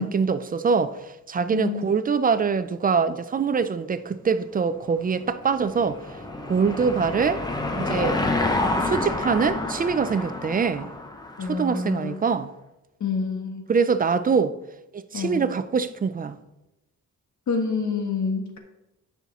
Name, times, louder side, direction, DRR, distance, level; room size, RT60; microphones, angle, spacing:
voice 1, 0.0-6.0 6.5-7.4 7.7-8.2 8.8-10.9 11.5-12.5 13.7-14.6 14.9-16.4, right 5 dB, 30° right, 0.4 m, -24 dB
voice 2, 1.5-1.9 11.4-12.2 13.0-13.6 15.1-15.5 17.5-18.6, left 5 dB, 70° left, 1.6 m, -27 dB
Car passing by / Engine, 5.1-11.9, left 2 dB, 15° left, 0.8 m, -28 dB
9.5 x 5.7 x 4.1 m
wide cardioid pair, 145°, 30 cm